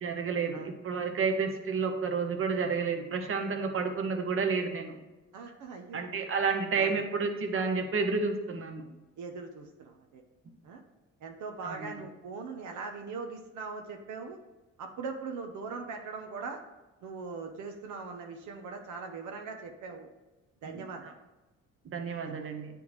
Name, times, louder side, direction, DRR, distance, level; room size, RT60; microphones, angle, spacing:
voice 1, 0.0-4.9 5.9-8.8 11.6-11.8 20.7-20.8 21.9-22.7, right 5 dB, 45° right, 5 dB, 0.9 m, -30 dB
voice 2, 5.3-6.0 6.5-7.1 9.2-10.2 10.6-10.8 11.2-14.4 14.8-16.6 17.0-20.1 20.6-21.1 22.2-22.4, right 4 dB, 75° right, 3 dB, 0.7 m, -41 dB
9.5 x 3.4 x 3.1 m, 1.1 s
cardioid pair, 90°, 30 cm